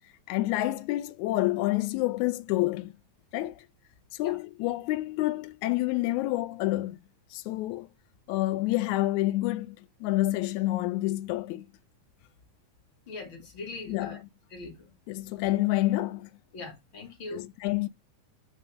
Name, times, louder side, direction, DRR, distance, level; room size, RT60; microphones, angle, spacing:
voice 1, 0.3-2.9 3.3-3.6 4.1-7.0 7.3-7.9 8.3-11.7 13.9-14.2 15.1-16.3 17.3-17.9, left 17 dB, 80° left, 1.9 m, -28 dB
voice 2, 13.1-14.2 14.5-14.9 16.5-17.5, left 3 dB, 40° left, 2.4 m, -41 dB
5.2 x 3.5 x 5.4 m
omnidirectional pair, 3.5 m